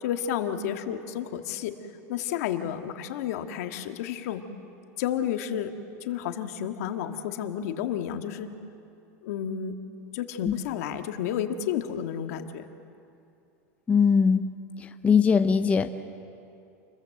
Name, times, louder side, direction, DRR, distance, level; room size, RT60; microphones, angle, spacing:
voice 1, 0.0-1.7 2.1-4.5 5.0-5.7 6.0-8.5 9.2-9.8 10.1-12.7, left 9 dB, 70° left, 6 dB, 1.8 m, -31 dB
voice 2, 13.9-14.5 15.0-15.9, left 6 dB, 15° left, 7 dB, 0.7 m, -20 dB
29.0 x 21.5 x 7.8 m, 2.6 s
supercardioid pair, 155°, 8 cm